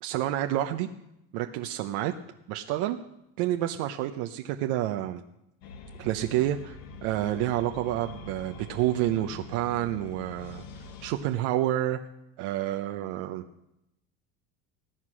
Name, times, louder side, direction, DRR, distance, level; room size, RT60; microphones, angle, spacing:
voice 1, 0.0-0.9 1.3-2.1 2.5-3.0 3.4-5.2 6.0-10.6 11.0-12.0 12.4-13.4, right 13 dB, 75° right, 5 dB, 1.0 m, -29 dB
sound 1, 5.6-11.1, left 4 dB, 90° left, 1.6 m, -44 dB
18.5 x 8.2 x 6.3 m, 0.84 s
supercardioid pair, 105°, 42 cm